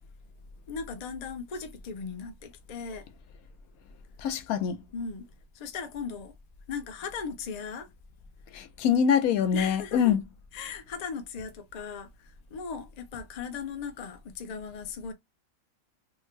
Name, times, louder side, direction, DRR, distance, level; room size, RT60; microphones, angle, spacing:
voice 1, 0.7-3.1 4.9-5.3 5.5-6.3 6.7-7.9 9.5-10.2 10.5-15.1, left 5 dB, 50° left, 0.4 m, -37 dB
voice 2, 4.2-4.8 8.5-10.2, left 8 dB, 85° left, 1.0 m, -24 dB
3.6 x 2.1 x 3.1 m
omnidirectional pair, 1.5 m